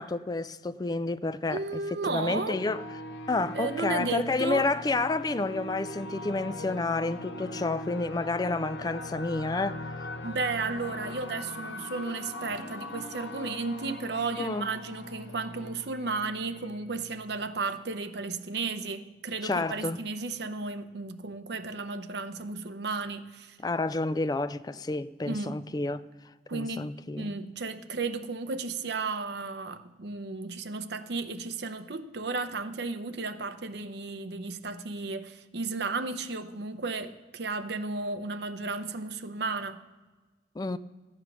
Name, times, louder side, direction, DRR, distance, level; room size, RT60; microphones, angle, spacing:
voice 1, 0.0-2.8 3.3-9.9 14.4-14.7 19.4-20.0 23.6-26.0 26.5-27.3 40.6-40.8, left 3 dB, 20° left, 0.3 m, -30 dB
voice 2, 1.5-2.6 3.5-4.6 10.2-23.6 25.2-25.6 26.5-26.9 27.2-39.8, right 3 dB, 65° right, 0.8 m, -34 dB
sound 1, 2.2-17.5, left 2 dB, 70° left, 0.9 m, -41 dB
14.0 x 8.9 x 6.2 m
head